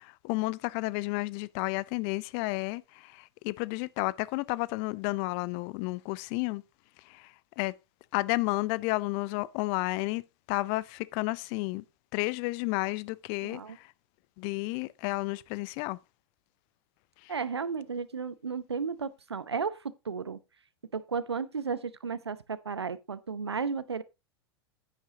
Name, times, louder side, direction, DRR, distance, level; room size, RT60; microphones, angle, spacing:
voice 1, 0.0-6.6 7.1-7.3 7.6-7.8 8.1-10.2 10.5-11.8 12.1-13.8 14.4-16.0, left 22 dB, 40° left, 0.5 m, -31 dB
voice 2, 13.4-13.8 17.3-20.4 20.9-24.0, right 5 dB, 85° right, 0.7 m, -34 dB
10.5 x 9.2 x 2.8 m
figure-of-eight pair, 95°, 13 cm